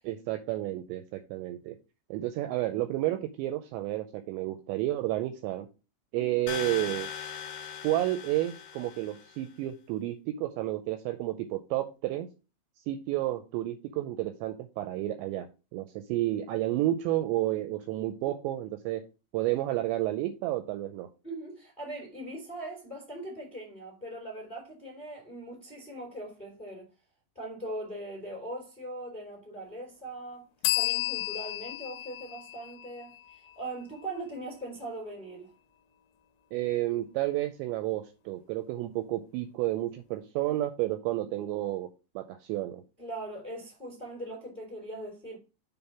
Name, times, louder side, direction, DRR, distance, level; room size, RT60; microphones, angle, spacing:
voice 1, 0.0-1.8 2.1-5.7 6.1-7.1 7.8-12.3 12.9-15.5 15.7-19.0 19.3-21.1 36.5-41.9 42.2-42.8, right 15 dB, 85° right, 2.6 m, -31 dB
sound 1, 6.5-9.4, left 8 dB, 65° left, 2.0 m, -39 dB
voice 2, 21.2-26.8 27.3-30.5 30.7-35.5 40.4-40.5 43.0-45.4, right 1 dB, 15° left, 1.7 m, -40 dB
sound 2, 30.6-34.2, left 17 dB, 85° left, 2.8 m, -33 dB
7.2 x 3.6 x 5.8 m
omnidirectional pair, 5.6 m